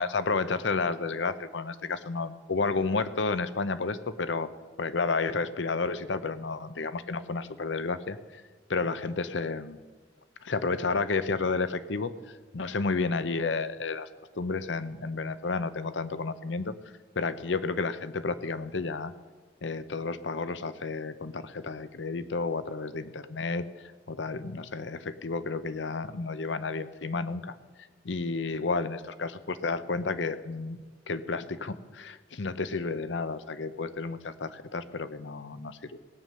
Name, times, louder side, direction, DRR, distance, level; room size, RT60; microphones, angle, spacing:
voice 1, 0.0-4.5 4.8-8.4 8.7-9.8 10.4-14.1 14.3-16.7 17.2-19.1 19.6-23.7 24.1-27.5 28.0-30.8 31.1-36.0, left 4 dB, 70° left, 13 dB, 0.7 m, -31 dB
17.0 x 6.7 x 9.2 m, 1.4 s
head